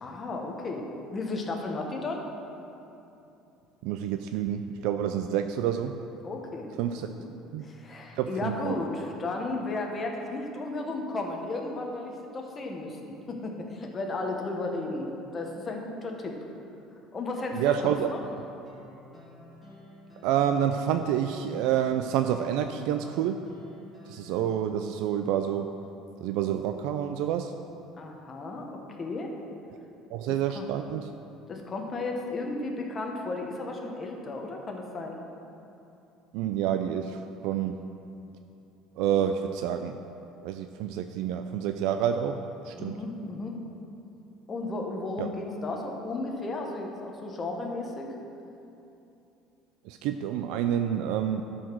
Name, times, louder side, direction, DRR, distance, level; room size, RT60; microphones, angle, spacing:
voice 1, 0.0-2.2 6.2-6.7 7.0-7.3 7.6-15.1 15.3-16.4 17.1-18.2 28.0-29.3 30.3-30.7 31.5-35.2 42.8-43.6 44.5-48.1, left 2 dB, 25° left, 1 dB, 1.1 m, -34 dB
voice 2, 3.8-6.0 6.8-7.1 7.5-7.6 8.2-8.8 17.5-18.1 20.2-23.4 24.1-25.7 26.2-27.5 30.1-31.1 36.3-37.8 39.0-40.0 40.4-43.0 45.2-45.3 49.9-51.4, right 9 dB, 70° right, 7 dB, 0.4 m, -28 dB
sound 1, 18.7-24.4, left 2 dB, 15° right, 2.4 m, -50 dB
11.5 x 5.0 x 6.1 m, 2.8 s
cardioid pair, 155°, 0 cm